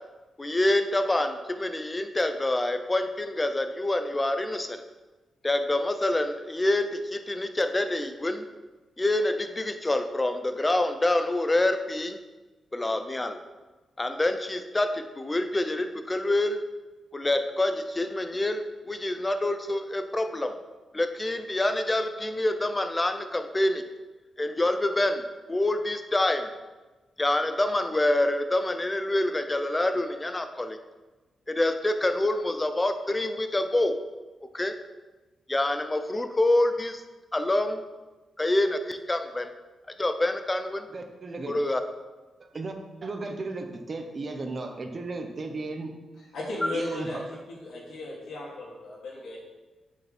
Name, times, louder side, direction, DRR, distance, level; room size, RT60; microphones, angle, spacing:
voice 1, 0.4-4.8 5.4-8.5 9.0-12.2 12.7-13.4 14.0-16.6 17.1-20.5 20.9-23.8 24.4-26.5 27.2-30.8 31.5-34.0 34.5-34.7 35.5-37.0 37.3-37.8 38.4-39.5 40.0-40.9 41.5-41.8, left 1 dB, 15° left, 8 dB, 0.6 m, -26 dB
voice 2, 40.9-41.5 42.5-42.7 43.0-45.9 46.7-47.2, right 3 dB, 35° right, 4 dB, 1.1 m, -35 dB
voice 3, 46.3-49.4, left 2 dB, 80° left, -4 dB, 2.9 m, -36 dB
8.4 x 6.8 x 4.3 m, 1.2 s
wide cardioid pair, 140°, 0 cm